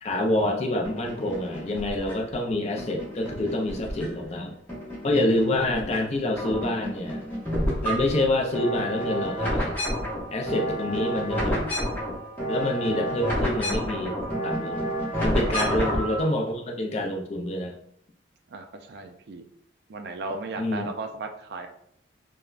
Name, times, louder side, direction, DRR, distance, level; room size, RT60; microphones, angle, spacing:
voice 1, 0.0-4.6 5.0-7.2 7.8-9.8 10.3-11.7 12.5-14.2 14.4-14.9 15.2-17.7 20.6-20.9, left 1 dB, 35° left, 2 dB, 0.4 m, -27 dB
sound 1, 0.8-2.3 2.8-4.4 4.7-6.0 6.3-16.2, equal, 10° left, 0.7 m, -30 dB
voice 2, 18.5-19.4 19.9-21.7, right 3 dB, 55° right, 5 dB, 0.3 m, -35 dB
3.3 x 2.0 x 2.4 m, 0.71 s
head